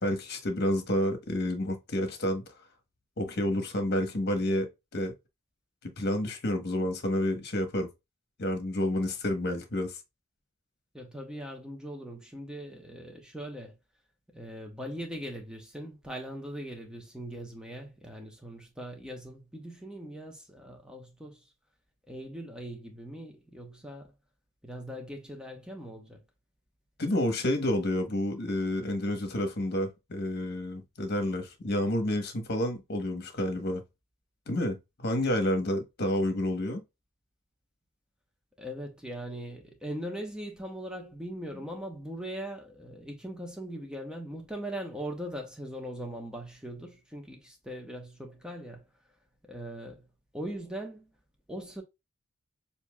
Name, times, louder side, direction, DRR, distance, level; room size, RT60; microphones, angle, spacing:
voice 1, 0.0-2.4 3.2-5.1 5.8-7.9 8.4-10.0 27.0-33.8 34.5-36.8, left 1 dB, 50° left, 1.1 m, -29 dB
voice 2, 10.9-13.7 14.3-21.4 22.1-24.1 24.6-26.2 38.6-48.8 49.4-50.0 50.3-51.1 51.5-51.8, equal, 5° right, 1.0 m, -40 dB
6.8 x 2.8 x 2.3 m
head